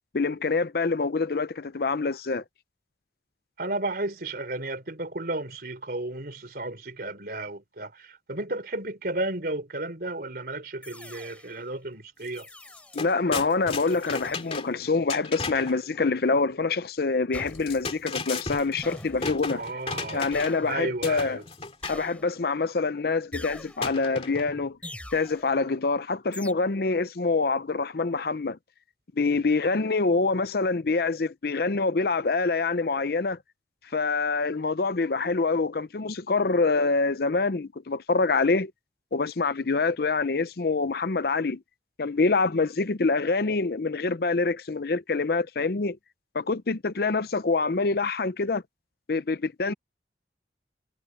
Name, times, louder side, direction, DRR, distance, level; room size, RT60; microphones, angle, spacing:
voice 1, 0.1-2.4 12.9-19.6 20.1-21.4 21.9-24.8 25.1-28.6 29.2-33.4 33.9-38.7 39.1-41.6 42.0-46.0 46.3-48.6 49.1-49.7, left 3 dB, 60° left, 0.6 m, -26 dB
voice 2, 3.6-12.5 19.5-20.3 20.7-21.4, right 2 dB, 55° right, 3.6 m, -33 dB
sound 1, 10.8-11.6 12.3-13.1 13.8-14.6 17.3-18.0 18.8-19.5 20.3-21.0 21.8-22.6 23.3-24.1 24.8-25.5 26.3-26.5, left 1 dB, 10° left, 3.5 m, -44 dB
sound 2, 12.3-12.4 12.7-15.8 17.5-20.7 21.0-22.1 23.8-24.7, left 4 dB, 35° left, 2.5 m, -35 dB
head